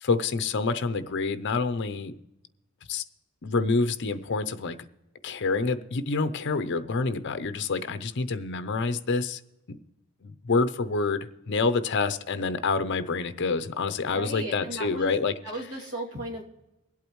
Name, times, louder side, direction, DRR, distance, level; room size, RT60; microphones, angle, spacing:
voice 1, 0.0-2.2 2.9-3.0 3.4-4.8 5.2-9.4 9.7-9.8 10.2-15.3, left 4 dB, 55° left, 0.6 m, -27 dB
voice 2, 14.1-15.1 15.4-16.4, right 1 dB, 70° right, 2.6 m, -35 dB
23.5 x 8.4 x 3.1 m
head